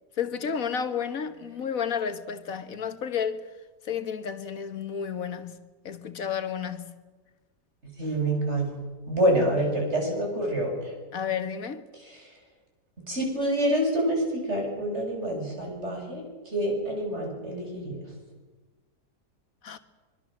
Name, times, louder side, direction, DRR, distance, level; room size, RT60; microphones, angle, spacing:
voice 1, 0.2-3.4 3.8-5.6 5.9-6.9 11.1-11.9 19.6-19.8, left 7 dB, 55° left, 1.8 m, -31 dB
voice 2, 8.0-8.7 9.1-10.9 12.0-12.2 13.1-18.0, right 1 dB, 40° right, 7.5 m, -27 dB
25.0 x 23.5 x 7.5 m
omnidirectional pair, 1.8 m